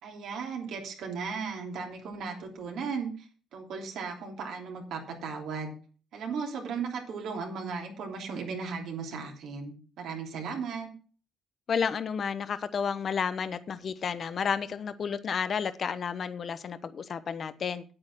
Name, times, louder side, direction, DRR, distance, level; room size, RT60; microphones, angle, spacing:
voice 1, 0.0-5.7 6.1-10.9, right 5 dB, 80° right, 3.2 m, -36 dB
voice 2, 11.7-17.8, left 6 dB, 50° left, 0.9 m, -31 dB
8.8 x 8.7 x 6.0 m
cardioid pair, 90°, 0 cm